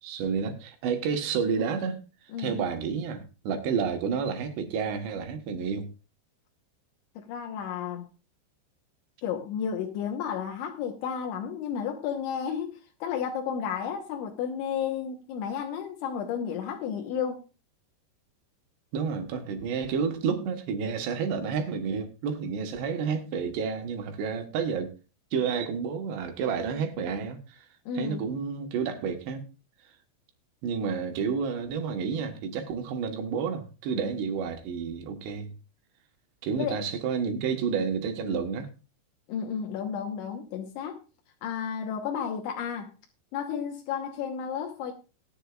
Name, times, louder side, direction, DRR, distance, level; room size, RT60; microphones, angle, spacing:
voice 1, 0.0-2.0 2.4-5.9 18.9-24.9 25.3-27.7 27.9-29.5 30.6-35.5 36.4-38.7, right 6 dB, 70° right, 3.4 m, -30 dB
voice 2, 7.2-8.1 9.2-17.4 27.9-28.3 36.6-36.8 39.3-41.0 41.4-42.9 43.3-44.9, left 7 dB, 85° left, 3.5 m, -32 dB
18.5 x 10.0 x 2.4 m
omnidirectional pair, 5.3 m